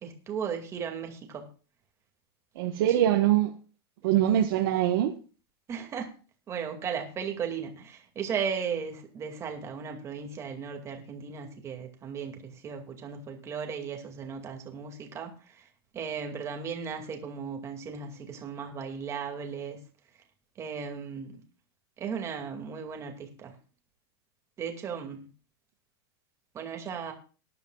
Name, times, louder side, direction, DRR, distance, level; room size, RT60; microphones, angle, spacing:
voice 1, 0.0-1.5 2.8-3.0 5.7-6.1 6.5-15.6 15.9-19.8 20.6-21.4 22.0-23.5 24.6-25.3 26.5-27.1, right 6 dB, 20° right, 3 dB, 2.3 m, -36 dB
voice 2, 2.6-3.5 4.0-5.1, right 12 dB, 65° right, 2 dB, 1.3 m, -23 dB
19.0 x 11.0 x 2.4 m, 0.36 s
supercardioid pair, 155°, 13 cm